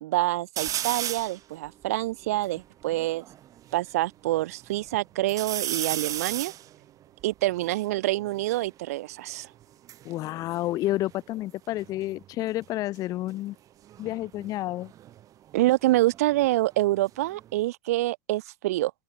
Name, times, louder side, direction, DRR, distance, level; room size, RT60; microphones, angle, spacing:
voice 1, 0.0-3.2 3.7-6.5 7.2-9.5 15.5-18.9, right 17 dB, 80° right, 0.9 m, -26 dB
sound 1, 0.6-1.4 2.0-2.1 2.2-3.8 4.3-4.9 5.3-8.7 9.6-11.5 11.8-12.3 13.8-16.5 16.8-17.6, right 12 dB, 45° right, 2.9 m, -36 dB
voice 2, 10.0-13.6 14.0-14.9, left 16 dB, 50° left, 0.4 m, -30 dB
open air
hypercardioid pair, 95°, 8 cm